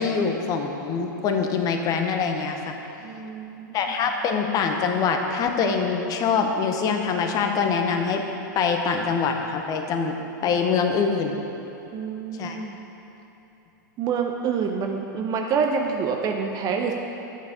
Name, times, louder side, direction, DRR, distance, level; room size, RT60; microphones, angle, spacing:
voice 1, 0.0-2.8 3.7-8.3 8.5-11.4 12.4-12.6, left 5 dB, 35° left, 4 dB, 0.7 m, -24 dB
voice 2, 3.0-3.7 11.9-12.8 14.0-16.9, right 6 dB, 35° right, 3 dB, 0.6 m, -27 dB
8.1 x 4.7 x 5.0 m, 3.0 s
hypercardioid pair, 105°, 11 cm